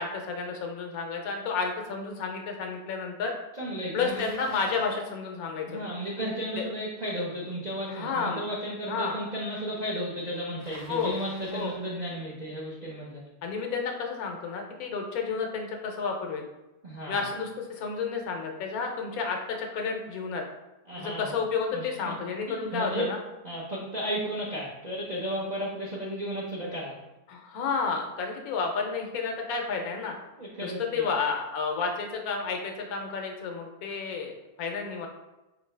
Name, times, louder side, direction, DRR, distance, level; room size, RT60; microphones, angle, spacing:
voice 1, 0.0-3.3 3.9-5.9 7.9-8.4 8.9-9.2 10.9-11.2 11.5-11.7 13.4-16.5 17.1-20.4 21.0-23.2 27.3-30.1 30.6-35.1, left 5 dB, 75° left, 2 dB, 1.1 m, -31 dB
voice 2, 3.5-4.2 5.7-13.2 16.8-17.3 20.9-21.3 21.7-22.1 22.7-23.1 23.4-27.0 30.4-31.1, equal, 40° right, -6 dB, 0.6 m, -34 dB
Bicycle, 4.0-5.1 10.6-11.9, left 1 dB, 25° left, 0.5 m, -49 dB
4.4 x 2.7 x 3.2 m, 1.0 s
omnidirectional pair, 1.6 m